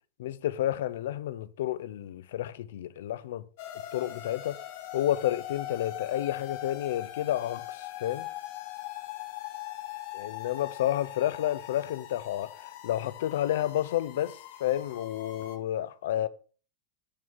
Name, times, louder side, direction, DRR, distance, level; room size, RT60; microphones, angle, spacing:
voice 1, 0.2-3.4 3.9-4.6 4.9-8.3 10.2-16.3, left 12 dB, 80° left, 0.6 m, -30 dB
sound 1, 3.6-15.6, left 13 dB, 55° left, 1.9 m, -41 dB
8.6 x 4.7 x 5.6 m
supercardioid pair, 150°, 0 cm